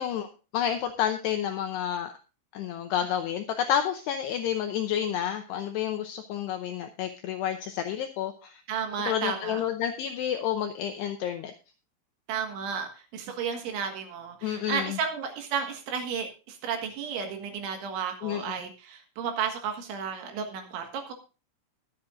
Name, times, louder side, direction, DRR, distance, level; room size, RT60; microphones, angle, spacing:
voice 1, 0.0-2.1 2.5-8.6 9.1-11.5 14.4-15.0 18.2-18.5, left 9 dB, 90° left, 6 dB, 2.4 m, -30 dB
voice 2, 8.7-9.6 12.3-21.1, right 6 dB, 70° right, 4 dB, 3.8 m, -33 dB
21.5 x 8.4 x 2.5 m, 0.32 s
omnidirectional pair, 5.8 m